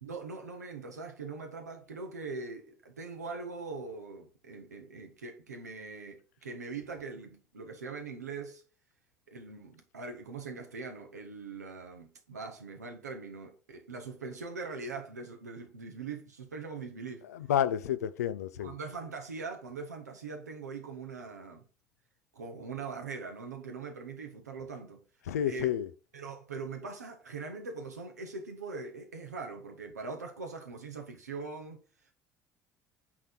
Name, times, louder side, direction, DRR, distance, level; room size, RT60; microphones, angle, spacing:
voice 1, 0.0-8.6 9.3-17.3 18.6-21.7 22.3-25.0 25.5-25.7 26.1-31.8, right 4 dB, 85° right, 1.5 m, -42 dB
voice 2, 17.3-18.7 25.3-25.9, left 10 dB, 75° left, 0.5 m, -30 dB
8.4 x 4.3 x 3.7 m
figure-of-eight pair, 60°, 9 cm